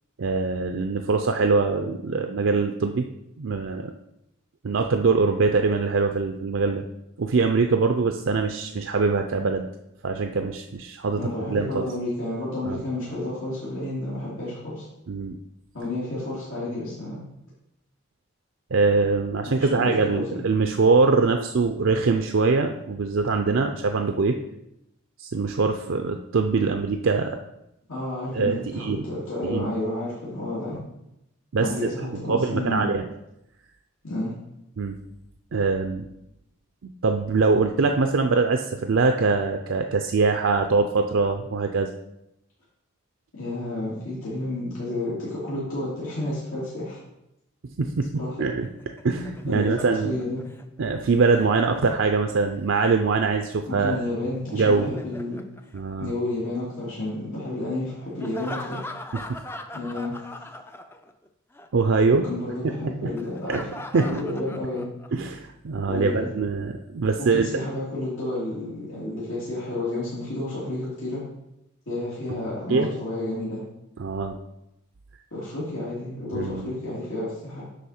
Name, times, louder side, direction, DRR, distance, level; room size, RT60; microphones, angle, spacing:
voice 1, 0.2-3.1 3.4-3.9 4.6-6.8 7.2-9.7 10.0-11.9 12.6-12.8 15.1-15.4 18.7-24.4 25.2-27.4 28.3-29.0 29.4-29.7 31.5-31.7 32.3-33.1 34.8-35.0 35.5-36.1 37.0-41.9 47.8-48.1 48.4-48.7 49.0-50.2 50.8-54.1 54.5-54.9 55.7-56.1 59.3-59.4 61.7-62.3 62.8-63.1 63.5-63.6 63.9-64.1 65.1-67.5 72.7-72.9 74.0-74.4 76.3-76.7, right 4 dB, 65° right, 5 dB, 0.5 m, -23 dB
voice 2, 11.2-14.8 15.7-17.2 19.4-20.4 27.9-30.8 31.6-32.8 34.0-34.3 43.3-47.0 48.1-48.5 49.5-50.4 53.7-55.4 56.0-58.8 59.7-60.2 62.3-63.7 64.0-64.9 65.8-66.3 67.3-71.2 71.9-73.6 75.3-77.6, left 1 dB, 85° left, -9 dB, 2.8 m, -31 dB
Laughter, 48.6-52.7 54.4-56.5 58.2-61.3 61.5-61.7 63.2-65.3, left 2 dB, 10° left, 0.3 m, -41 dB
8.3 x 5.6 x 4.3 m, 0.85 s
head